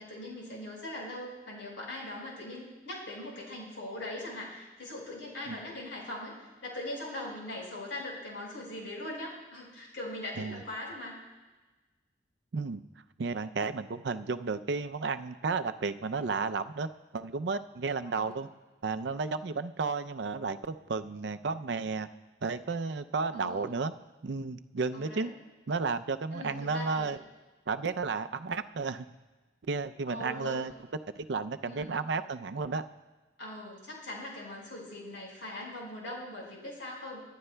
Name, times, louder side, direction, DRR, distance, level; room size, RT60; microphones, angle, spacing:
voice 1, 0.0-11.2 18.1-18.3 23.3-23.7 24.9-25.3 26.3-27.1 30.1-30.6 31.6-32.0 33.4-37.2, left 1 dB, 75° left, -3 dB, 4.9 m, -41 dB
voice 2, 13.2-18.5 18.8-22.1 22.4-23.9 24.2-25.3 25.7-27.2 27.7-29.1 29.7-30.7 31.2-32.8, right 4 dB, 65° right, 10 dB, 0.5 m, -33 dB
27.0 x 11.5 x 2.2 m, 1.2 s
head